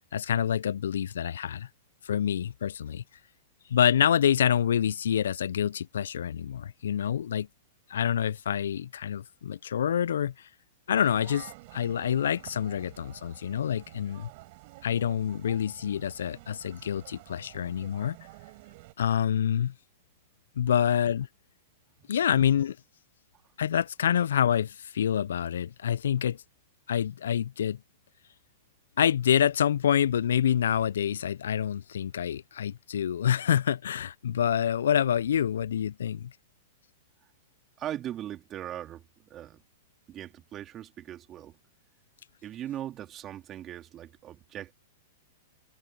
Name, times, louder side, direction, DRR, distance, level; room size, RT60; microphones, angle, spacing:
voice 1, 0.1-1.7 2.0-3.0 3.7-7.5 7.9-10.5 10.9-14.3 14.8-18.2 19.0-19.7 20.6-21.3 22.1-22.8 23.6-26.4 26.9-27.8 29.0-36.3, left 9 dB, 75° left, 0.3 m, -27 dB
sound 1, 10.9-18.9, right 23 dB, 50° right, 4.5 m, -50 dB
voice 2, 37.8-39.6 40.1-41.6 42.4-44.7, right 11 dB, 30° right, 3.4 m, -39 dB
hypercardioid pair, 110°, 0 cm